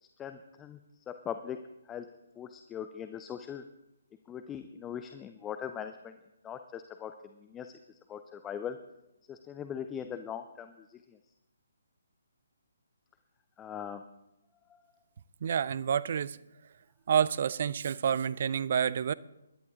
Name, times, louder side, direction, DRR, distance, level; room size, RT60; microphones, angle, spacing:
voice 1, 0.0-1.6 1.9-2.1 2.4-3.6 4.3-6.1 6.4-8.8 9.3-11.2 13.6-14.0 14.7-14.8, left 8 dB, 15° left, 0.6 m, -41 dB
voice 2, 15.4-16.4 17.1-19.1, right 8 dB, 45° right, 0.4 m, -28 dB
21.5 x 11.0 x 3.7 m
figure-of-eight pair, 140°, 0 cm